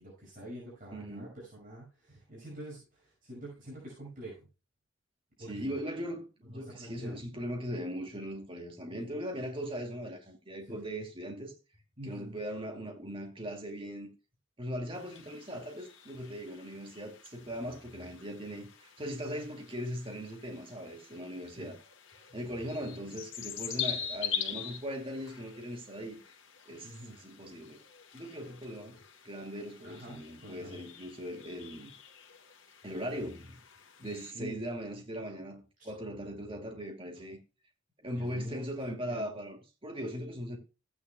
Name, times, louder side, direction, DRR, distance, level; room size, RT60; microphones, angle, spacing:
voice 1, 0.0-4.5 5.4-5.8 6.5-7.1 9.1-9.2 10.6-10.8 12.0-12.4 21.6-21.7 26.8-27.1 29.8-30.8 34.3-34.6 35.8-35.9 38.1-38.6 39.1-39.3, equal, 45° right, 5.9 m, -46 dB
voice 2, 0.9-1.3 5.5-11.5 12.0-14.1 14.6-21.8 22.3-26.2 26.7-27.8 28.1-29.0 29.2-31.9 32.8-33.6 34.0-37.4 38.0-40.6, equal, 25° right, 2.3 m, -39 dB
sound 1, 14.9-34.3, left 8 dB, 75° left, 1.6 m, -44 dB
15.0 x 9.8 x 2.2 m
head